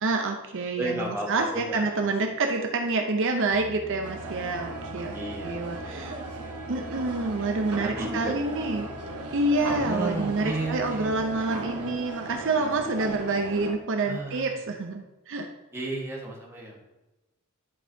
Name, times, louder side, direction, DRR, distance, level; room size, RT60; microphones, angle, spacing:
voice 1, 0.0-5.2 5.4-6.2 6.7-8.9 9.3-15.5, right 3 dB, 60° right, 4 dB, 0.6 m, -27 dB
voice 2, 0.8-2.3 3.6-3.9 5.1-6.5 7.0-7.3 7.7-8.4 9.8-11.2 14.0-14.6 15.7-16.8, right 1 dB, 10° right, -3 dB, 1.5 m, -34 dB
Piano, 3.5-11.6, left 3 dB, 30° left, 0.4 m, -46 dB
sound 1, 4.0-13.7, right 2 dB, 85° right, 1.2 m, -37 dB
10.0 x 5.4 x 2.7 m, 1.0 s
head